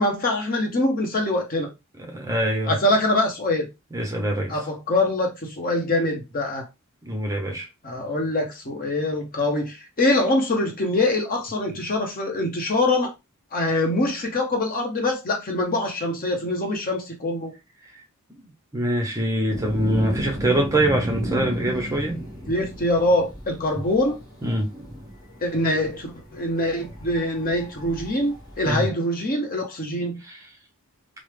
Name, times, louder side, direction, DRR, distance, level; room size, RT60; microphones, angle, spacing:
voice 1, 0.0-1.7 2.7-3.7 4.5-6.7 7.8-13.1 13.5-17.5 22.5-24.2 25.4-30.2, left 1 dB, 40° left, 0.8 m, -24 dB
voice 2, 2.1-2.8 3.9-4.6 7.0-7.7 18.3-18.4 18.7-22.2 24.4-24.7 28.6-28.9 30.3-30.4, right 1 dB, 15° right, 0.6 m, -24 dB
sound 1, 19.5-28.8, equal, 20° left, 1.0 m, -34 dB
3.3 x 2.0 x 3.2 m
head